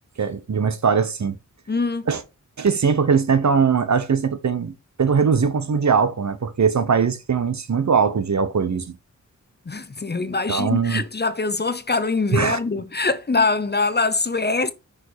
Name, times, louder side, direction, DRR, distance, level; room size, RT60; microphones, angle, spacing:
voice 1, 0.2-1.4 2.1-2.2 2.6-4.7 5.0-8.9 10.5-11.0 12.3-12.6, right 6 dB, 60° right, 1.0 m, -20 dB
voice 2, 1.7-2.1 9.7-14.7, left 3 dB, 30° left, 0.9 m, -23 dB
6.1 x 5.0 x 4.7 m
cardioid pair, 55°, 32 cm